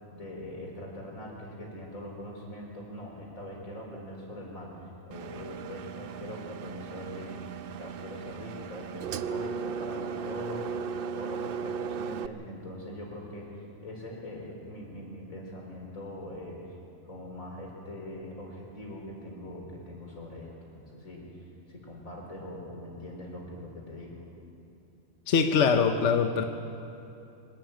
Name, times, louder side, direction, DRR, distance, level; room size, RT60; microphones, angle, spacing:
voice 1, 0.1-16.8 17.1-24.2, left 1 dB, 90° left, -1 dB, 4.5 m, -42 dB
Engine, 5.1-12.3, right 6 dB, 60° right, 0.6 m, -37 dB
voice 2, 25.3-26.5, left 6 dB, 65° left, 5 dB, 1.2 m, -23 dB
24.5 x 12.0 x 9.1 m, 2.7 s
omnidirectional pair, 1.4 m